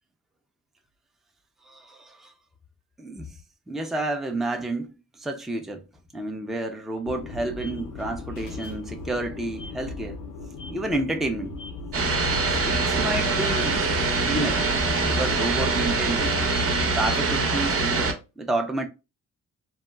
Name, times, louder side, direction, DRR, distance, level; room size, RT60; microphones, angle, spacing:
voice 1, 1.6-2.3 3.0-3.4 3.7-5.9 6.1-10.2 10.7-11.6 12.5-13.8 14.3-14.7 15.0-16.4 16.9-18.9, right 2 dB, ahead, 0.4 m, -30 dB
sound 1, 7.1-16.1, left 3 dB, 80° left, 0.5 m, -38 dB
sound 2, 11.9-18.1, right 3 dB, 50° right, 0.7 m, -24 dB
2.8 x 2.3 x 2.2 m
cardioid pair, 90°, 30 cm